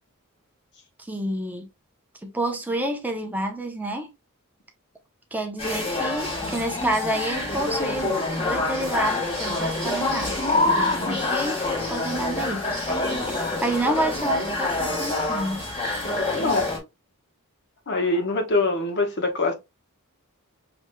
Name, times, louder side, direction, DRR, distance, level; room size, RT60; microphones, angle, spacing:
voice 1, 1.1-1.7 2.3-4.1 5.3-12.8 13.3-15.6, right 1 dB, 10° right, 0.7 m, -29 dB
sound 1, 5.6-16.8, left 2 dB, 25° left, 1.6 m, -26 dB
voice 2, 16.3-16.7 17.9-19.5, left 2 dB, 50° left, 1.1 m, -24 dB
6.0 x 3.1 x 2.2 m
head